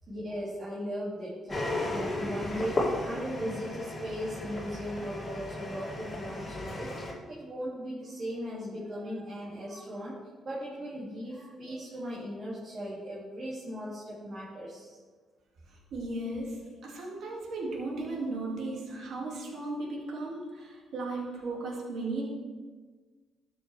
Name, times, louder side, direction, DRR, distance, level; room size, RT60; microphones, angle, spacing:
voice 1, 0.1-6.9 7.3-15.0, equal, 40° right, -8 dB, 2.6 m, -38 dB
sound 1, 1.5-7.1, left 1 dB, 30° left, 2.7 m, -34 dB
voice 2, 15.7-22.3, right 2 dB, 70° right, -3 dB, 2.4 m, -36 dB
13.0 x 6.1 x 3.5 m, 1.4 s
cardioid pair, 90°, 0 cm